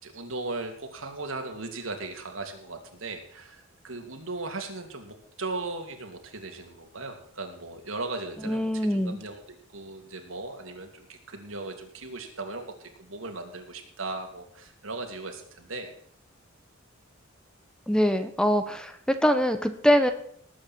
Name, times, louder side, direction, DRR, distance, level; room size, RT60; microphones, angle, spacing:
voice 1, 0.0-15.9, right 3 dB, 80° right, 4 dB, 3.0 m, -37 dB
voice 2, 8.4-9.2 17.9-20.1, equal, 5° left, 9 dB, 1.0 m, -23 dB
19.0 x 8.8 x 4.5 m, 0.64 s
head